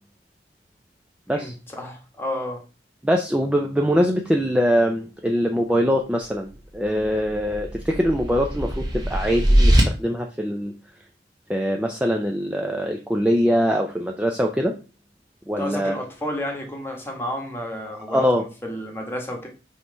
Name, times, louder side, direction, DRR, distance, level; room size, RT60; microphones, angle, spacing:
voice 1, 1.3-2.6 15.6-19.5, left 1 dB, 10° left, 1 dB, 1.3 m, -31 dB
voice 2, 3.0-10.7 11.5-14.7 15.5-16.0 18.1-18.4, equal, 5° right, 2 dB, 0.5 m, -23 dB
sound 1, 7.0-9.8, equal, 20° right, 1.6 m, -21 dB
5.6 x 3.1 x 5.4 m, 0.33 s
head